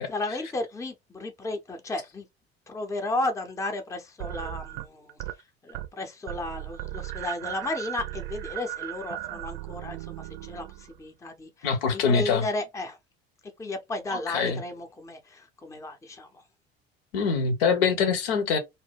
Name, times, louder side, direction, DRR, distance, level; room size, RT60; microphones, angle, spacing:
voice 1, 0.0-2.3 2.7-5.2 5.6-13.0 13.6-16.4, left 2 dB, 10° left, 0.6 m, -34 dB
sound 1, 4.2-5.4 5.7-6.0 6.3-11.0, right 15 dB, 60° right, 0.5 m, -37 dB
voice 2, 11.6-12.4 14.1-14.6 17.1-18.6, left 5 dB, 70° left, 0.8 m, -24 dB
2.7 x 2.1 x 3.4 m
figure-of-eight pair, 60°, 31 cm